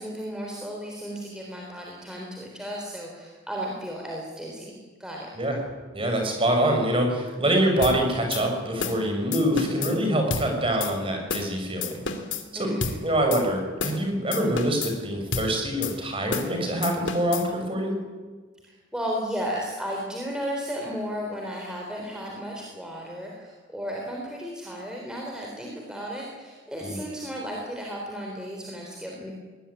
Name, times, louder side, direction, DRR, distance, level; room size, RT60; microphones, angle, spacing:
voice 1, 0.0-5.3 12.5-13.0 18.6-29.3, equal, 5° right, -1 dB, 3.8 m, -34 dB
voice 2, 5.9-12.0 12.5-12.7 13.0-17.9 26.8-27.0, right 1 dB, 25° right, 2 dB, 6.4 m, -25 dB
sound 1, 7.8-8.0 8.3-8.4 8.8-9.0 9.3-9.9 10.3-10.5 10.8-10.9 11.3-11.5 11.8-12.4 12.8-13.0 13.3-13.4 13.8-14.0 14.3-14.9 15.3-15.5 15.8-15.9 16.3-16.5 16.8-17.4, left 4 dB, 65° left, 2.9 m, -30 dB
22.0 x 19.0 x 9.9 m, 1.4 s
head